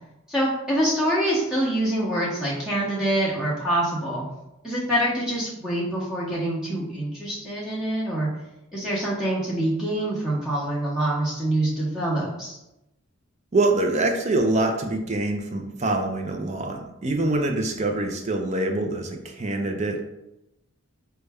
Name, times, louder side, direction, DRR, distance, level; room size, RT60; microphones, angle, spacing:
voice 1, 0.3-4.2 4.6-8.3 8.7-12.6, right 1 dB, 5° right, -7 dB, 0.8 m, -25 dB
voice 2, 13.5-20.1, right 2 dB, 30° right, 3 dB, 0.4 m, -25 dB
5.3 x 2.2 x 3.4 m, 0.91 s
head